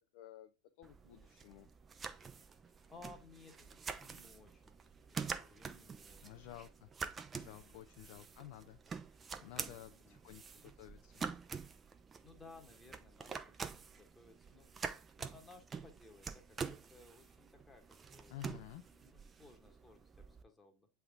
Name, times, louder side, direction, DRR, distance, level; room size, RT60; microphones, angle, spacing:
voice 1, 0.1-0.5 0.8-1.7 6.2-6.9 7.3-8.8 9.4-10.4 10.8-11.3 18.3-18.8, left 13 dB, 50° left, 7 dB, 0.5 m, -52 dB
sound 1, 0.8-20.4, right 5 dB, 20° right, 0.5 m, -47 dB
voice 2, 2.5-6.5 7.3-7.8 9.4-10.2 12.2-14.7 15.2-18.4 18.8-20.9, left 3 dB, 10° left, 4 dB, 1.2 m, -60 dB
7.8 x 3.5 x 3.5 m, 0.25 s
figure-of-eight pair, 85°, 0 cm